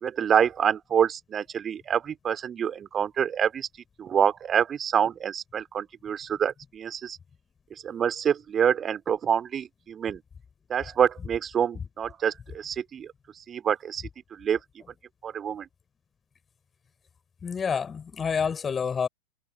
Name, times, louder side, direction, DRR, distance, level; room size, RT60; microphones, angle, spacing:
voice 1, 0.0-3.7 4.0-7.2 7.8-10.2 10.7-13.1 13.5-14.0 14.3-14.6 15.2-15.7, right 8 dB, 25° right, 2.6 m, -26 dB
voice 2, 17.4-19.1, left 6 dB, 20° left, 3.6 m, -28 dB
figure-of-eight pair, 90°, 0 cm